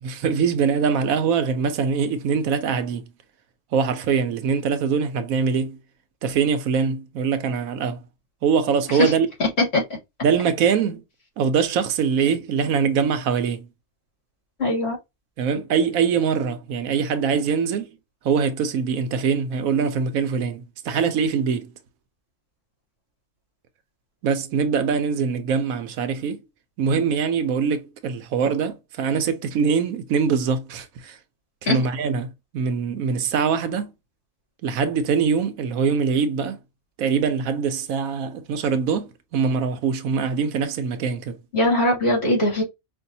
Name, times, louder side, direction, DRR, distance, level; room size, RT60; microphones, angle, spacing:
voice 1, 0.0-3.1 3.7-5.8 6.2-8.1 8.4-9.3 10.2-11.0 11.4-13.7 15.4-17.9 18.2-21.7 24.2-26.4 26.8-31.2 31.6-33.9 34.6-36.6 37.0-41.4, right 6 dB, 80° right, 1.1 m, -23 dB
voice 2, 9.4-9.8 14.6-15.0 31.7-31.8 41.5-42.6, left 2 dB, 50° left, 2.5 m, -20 dB
5.3 x 2.5 x 2.6 m
omnidirectional pair, 1.4 m